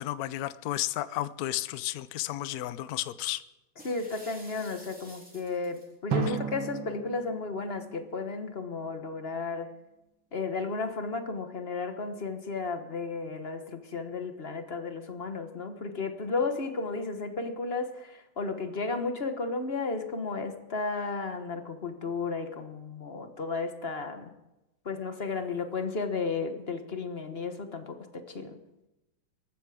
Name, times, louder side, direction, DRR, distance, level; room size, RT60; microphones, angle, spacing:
voice 1, 0.0-3.4 6.3-6.4, left 15 dB, 65° left, 15 dB, 0.9 m, -33 dB
voice 2, 3.8-9.7 10.3-24.3 24.8-28.6, left 4 dB, 35° left, 7 dB, 1.2 m, -33 dB
sound 1, 3.8-5.9, equal, 5° right, 2.9 m, -51 dB
Drum, 6.1-8.8, right 5 dB, 75° right, 2.2 m, -35 dB
19.0 x 14.5 x 5.0 m, 0.96 s
omnidirectional pair, 2.2 m